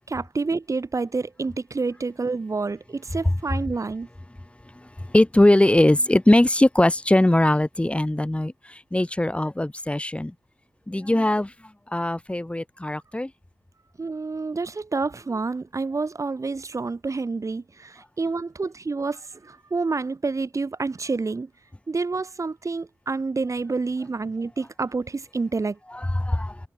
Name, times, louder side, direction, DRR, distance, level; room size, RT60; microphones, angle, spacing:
voice 1, 0.1-4.1 14.0-21.5 21.9-25.8, right 4 dB, 55° right, 2.4 m, -28 dB
voice 2, 4.8-10.3 10.9-11.5 11.9-13.3 25.9-26.6, left 1 dB, 20° left, 5.8 m, -21 dB
cardioid pair, 55°, 6 cm